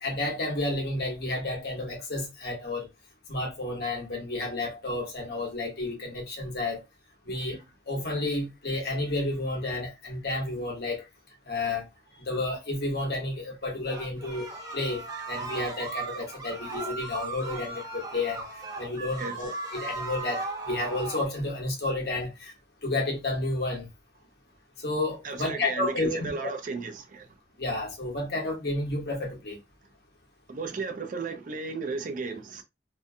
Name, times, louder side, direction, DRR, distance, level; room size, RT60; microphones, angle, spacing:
voice 1, 0.0-2.9 3.3-6.8 7.2-11.0 11.5-11.8 12.2-18.4 18.8-22.5 22.8-23.9 24.8-26.5 27.6-29.6, left 2 dB, 60° left, 1.0 m, -31 dB
sound 1, 13.9-21.3, right 3 dB, 20° right, 0.7 m, -37 dB
voice 2, 25.2-27.3 30.5-32.6, right 4 dB, 45° right, 0.4 m, -34 dB
2.6 x 2.1 x 2.6 m
head